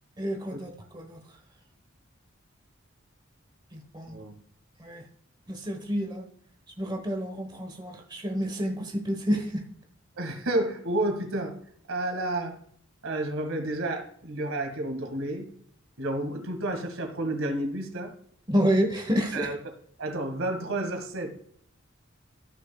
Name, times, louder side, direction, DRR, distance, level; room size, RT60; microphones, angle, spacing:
voice 1, 0.2-1.2 3.7-4.2 4.8-5.0 5.5-6.2 6.8-9.6 18.5-19.5, equal, 20° right, 1.2 m, -29 dB
voice 2, 10.2-11.6 11.9-12.6 13.0-15.5 16.0-18.1 19.3-19.6 20.0-21.3, right 1 dB, 80° right, 1.9 m, -30 dB
14.5 x 6.5 x 2.3 m
head